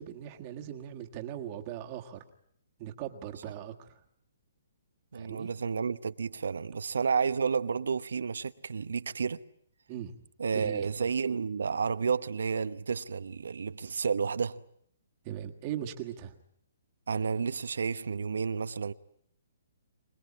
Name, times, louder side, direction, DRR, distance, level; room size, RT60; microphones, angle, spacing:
voice 1, 0.0-2.2 2.8-4.0 5.1-5.5 9.9-10.3 10.5-10.9 15.2-16.4, right 11 dB, 20° right, 1.5 m, -39 dB
voice 2, 5.1-9.4 10.4-14.6 17.1-18.9, right 5 dB, 90° right, 1.0 m, -31 dB
25.5 x 20.0 x 8.6 m
hypercardioid pair, 175°, 0 cm